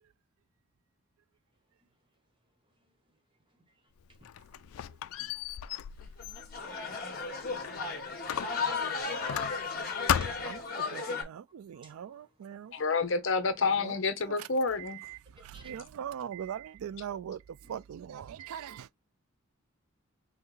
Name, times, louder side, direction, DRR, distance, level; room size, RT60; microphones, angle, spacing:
Squeak, 4.0-7.8 8.3-9.8 10.1-10.6, left 9 dB, 80° left, 0.3 m, -35 dB
sound 1, 6.0-11.2, left 4 dB, 45° left, 1.7 m, -35 dB
voice 1, 6.2-6.9 9.6-10.5 11.7-12.3 12.6-12.8 13.8-13.9 15.4-15.7 17.6-17.7, right 1 dB, 25° right, 1.1 m, -58 dB
voice 2, 10.4-12.7 13.8-13.9 14.4-14.5 14.8-18.9, right 9 dB, 85° right, 0.3 m, -41 dB
voice 3, 12.7-15.0, left 4 dB, 60° left, 0.9 m, -29 dB
5.6 x 2.2 x 3.1 m
head